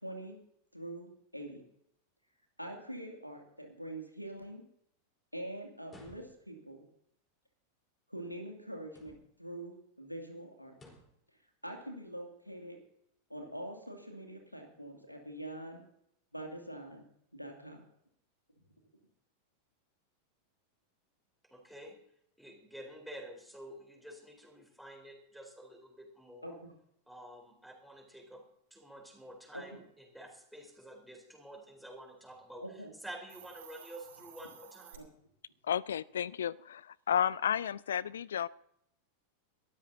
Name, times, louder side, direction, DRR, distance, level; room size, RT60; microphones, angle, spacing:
voice 1, 0.0-0.4 0.7-1.6 2.6-4.6 5.3-6.9 8.1-10.7 11.6-12.8 13.3-15.8 16.3-17.1 17.3-17.8 26.4-26.7 29.5-29.8 32.6-32.9 35.0-35.1, right 1 dB, 90° left, 3 dB, 2.5 m, -44 dB
sound 1, 5.8-6.6 8.8-9.5 10.7-11.2, left 1 dB, 20° left, 3.9 m, -57 dB
voice 2, 21.5-22.0 22.4-26.6 27.1-28.4 28.7-32.6 33.0-35.0, right 1 dB, ahead, 1 dB, 4.0 m, -49 dB
Hiss, 33.1-35.0, right 9 dB, 60° right, 4.0 m, -54 dB
voice 3, 35.6-38.5, left 9 dB, 65° left, 24 dB, 0.4 m, -32 dB
22.0 x 13.0 x 2.8 m, 0.71 s
figure-of-eight pair, 90°, 0 cm